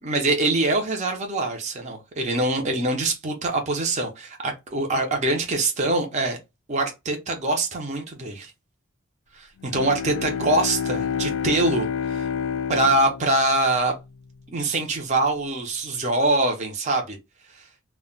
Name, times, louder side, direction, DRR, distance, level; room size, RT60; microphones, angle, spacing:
voice 1, 0.0-6.4 6.7-8.5 9.3-12.3 12.7-13.9 14.5-17.2 17.5-17.7, right 2 dB, 35° right, 0.5 m, -24 dB
Bowed string instrument, 9.6-14.4, left 7 dB, 65° left, 0.3 m, -29 dB
2.1 x 2.1 x 3.6 m
head